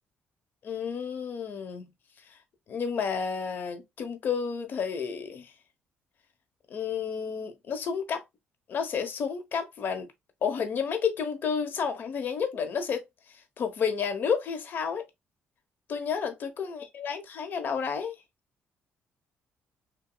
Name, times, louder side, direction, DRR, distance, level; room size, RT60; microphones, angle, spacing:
voice 1, 0.6-1.9 2.7-5.5 6.7-8.2 8.7-10.1 10.4-13.0 13.6-15.0 15.9-18.1, left 6 dB, 55° left, 0.9 m, -31 dB
5.9 x 2.2 x 2.2 m
cardioid pair, 125°, 4 cm